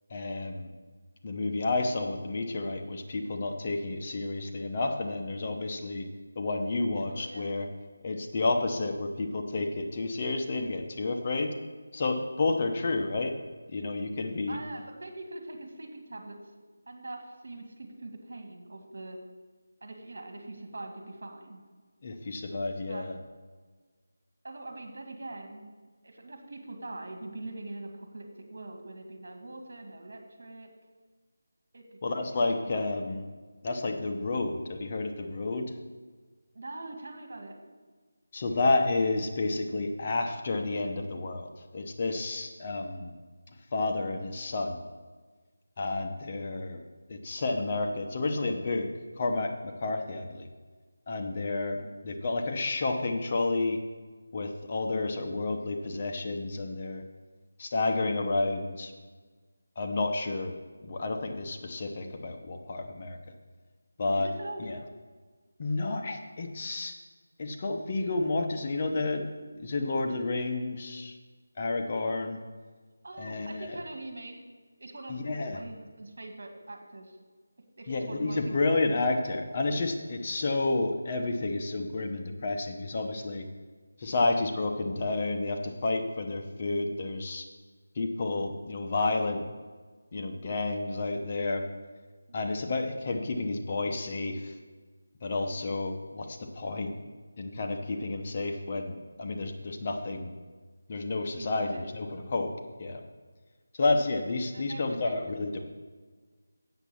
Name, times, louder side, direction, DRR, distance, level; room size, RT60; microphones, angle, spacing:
voice 1, 0.1-0.7 1.2-6.0 6.4-7.7 8.0-11.5 11.9-13.3 13.7-14.6 22.0-23.2 32.0-33.2 33.6-35.7 38.3-43.1 43.7-44.8 45.8-46.8 47.1-48.9 49.2-50.5 51.1-53.8 54.3-57.0 57.6-58.9 59.8-60.5 60.8-63.2 64.0-64.3 64.6-64.8 65.6-66.9 67.4-69.2 69.6-71.2 71.6-72.4 73.2-73.8 75.1-75.6 77.9-83.5 84.0-87.4 88.0-89.4 90.1-91.7 92.3-94.5 95.2-96.9 97.4-100.3 100.9-102.5 102.8-103.0 103.8-105.6, left 2 dB, 30° left, 4 dB, 0.8 m, -30 dB
voice 2, 6.9-7.5 14.5-16.4 16.9-19.2 19.8-21.6 22.9-23.1 24.4-25.7 26.0-30.7 31.7-32.9 36.5-37.6 51.8-52.0 64.2-64.9 73.0-74.4 74.8-75.2 75.5-77.2 77.8-78.6 101.4-101.9 104.5-105.2 105.6-105.7, right 2 dB, 65° right, 4 dB, 2.1 m, -43 dB
8.1 x 7.2 x 7.0 m, 1.4 s
figure-of-eight pair, 170°, 0 cm